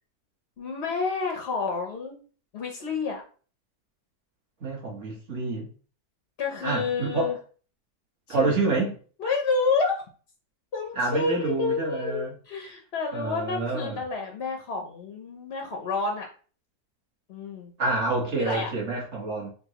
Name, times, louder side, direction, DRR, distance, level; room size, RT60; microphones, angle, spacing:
voice 1, 0.6-2.2 2.5-3.2 6.4-7.4 8.4-8.5 9.2-10.0 10.7-16.3 17.3-17.7 18.4-18.7, left 4 dB, 60° left, 0.6 m, -29 dB
voice 2, 4.6-5.7 6.6-7.3 8.3-8.9 11.0-12.3 13.1-14.0 17.8-19.5, right 3 dB, 50° right, 1.4 m, -28 dB
5.2 x 2.2 x 2.9 m
omnidirectional pair, 1.7 m